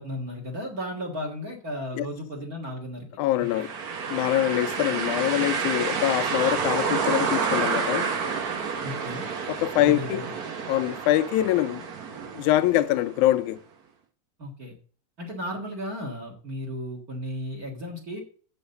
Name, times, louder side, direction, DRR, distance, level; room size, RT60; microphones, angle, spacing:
voice 1, 0.0-3.1 3.4-3.7 8.8-9.3 9.8-10.2 14.4-14.7 15.2-18.2, equal, 35° right, 1.9 m, -34 dB
voice 2, 3.2-3.7 4.1-8.1 9.5-10.2 10.7-11.9 12.4-13.6, left 14 dB, 85° left, 2.0 m, -24 dB
sound 1, 3.4-13.2, right 5 dB, 85° right, 0.8 m, -29 dB
7.8 x 7.1 x 6.6 m
omnidirectional pair, 3.4 m